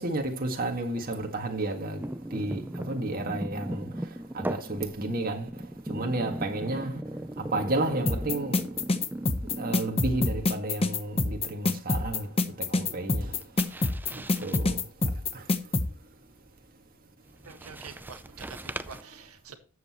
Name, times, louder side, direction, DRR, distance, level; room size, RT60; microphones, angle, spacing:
voice 1, 0.0-2.0 2.3-3.9 4.3-5.5 5.9-7.0 7.4-8.7 9.4-12.3 12.6-13.7 14.1-14.8 15.3-15.4, right 2 dB, 40° right, 1.8 m, -32 dB
sound 1, 2.0-10.1 10.5-10.8 13.1-14.6 17.3-19.0, right 1 dB, 10° right, 0.5 m, -38 dB
sound 2, 8.1-15.9, left 2 dB, 25° left, 1.0 m, -26 dB
voice 2, 17.5-19.6, right 5 dB, 90° right, 1.7 m, -46 dB
13.5 x 8.1 x 3.0 m
head